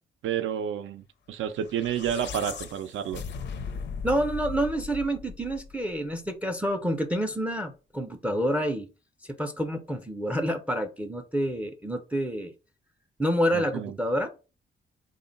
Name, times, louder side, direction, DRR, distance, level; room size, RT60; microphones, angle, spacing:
voice 1, 0.2-3.2 13.5-13.9, right 9 dB, 80° right, 0.4 m, -30 dB
sound 1, 1.6-6.0, left 5 dB, 60° left, 0.5 m, -38 dB
voice 2, 4.0-8.9 9.2-12.5 13.2-14.3, equal, 5° right, 0.4 m, -28 dB
3.6 x 2.1 x 3.8 m
cardioid pair, 115°, 20 cm